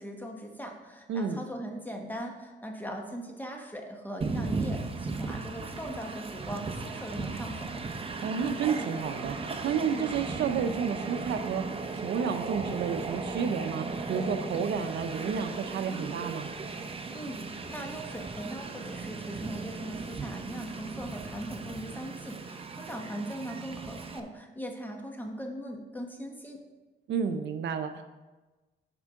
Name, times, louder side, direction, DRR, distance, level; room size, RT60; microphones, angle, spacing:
voice 1, 0.0-7.8 17.1-26.6, equal, 10° left, 2 dB, 1.2 m, -40 dB
voice 2, 1.1-1.4 8.2-11.6 11.9-16.5 27.1-28.0, right 6 dB, 65° right, 8 dB, 0.6 m, -31 dB
Train, 4.2-24.2, right 4 dB, 30° right, 0.7 m, -37 dB
12.0 x 4.6 x 3.7 m, 1.2 s
cardioid pair, 90°, 20 cm